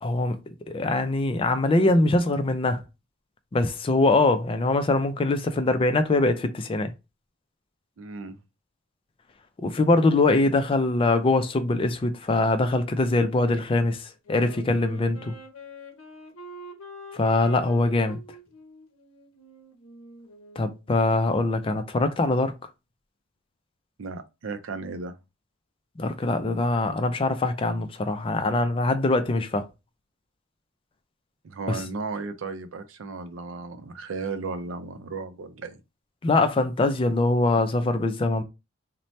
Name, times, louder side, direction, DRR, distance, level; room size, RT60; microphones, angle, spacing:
voice 1, 0.0-2.8 3.5-6.9 9.6-15.3 17.1-18.2 20.6-22.5 26.0-29.7 31.7-31.8 36.2-38.4, left 2 dB, 25° left, 0.4 m, -23 dB
voice 2, 8.0-8.4 24.0-25.2 31.4-35.8, right 4 dB, 70° right, 0.4 m, -35 dB
Wind instrument woodwind instrument, 14.2-20.8, equal, 75° left, 0.7 m, -44 dB
2.7 x 2.1 x 3.0 m
head